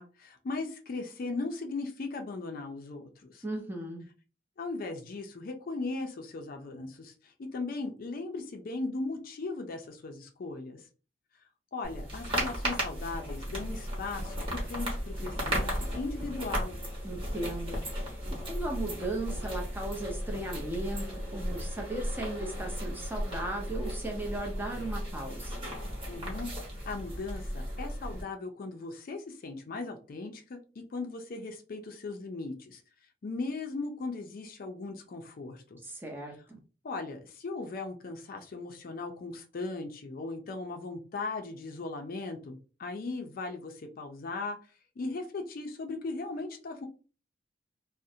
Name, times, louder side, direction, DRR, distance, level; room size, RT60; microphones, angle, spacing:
voice 1, 0.0-3.4 4.6-10.8 11.7-16.8 26.1-26.5 26.9-32.8 33.2-35.8 36.8-44.6 45.0-46.9, left 3 dB, 50° left, 5 dB, 0.4 m, -38 dB
voice 2, 3.4-4.0 17.0-25.6 35.8-36.6, right 2 dB, 10° right, 2 dB, 0.5 m, -37 dB
sound 1, 11.8-28.2, equal, 30° right, 1.0 m, -35 dB
2.5 x 2.0 x 2.6 m, 0.36 s
head